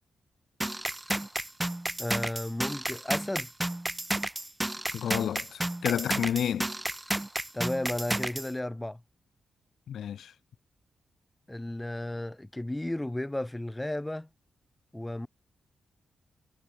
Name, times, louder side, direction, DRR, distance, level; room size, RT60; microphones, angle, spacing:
sound 1, 0.6-8.5, right 1 dB, 10° right, 4.1 m, -32 dB
voice 1, 2.0-3.5 7.5-9.0 11.5-14.3 14.9-15.3, left 1 dB, 10° left, 6.7 m, -33 dB
voice 2, 4.9-6.7 9.9-10.3, left 9 dB, 85° left, 2.6 m, -30 dB
wide cardioid pair, 135°, 0 cm